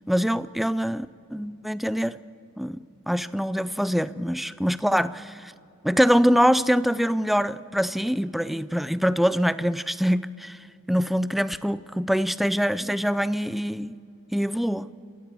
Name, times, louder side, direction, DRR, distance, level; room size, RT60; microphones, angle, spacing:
voice 1, 0.1-2.2 2.6-5.5 5.8-10.6 10.9-14.0 14.3-14.9, equal, ahead, 16 dB, 0.4 m, -24 dB
29.5 x 13.0 x 8.4 m, 2.5 s
head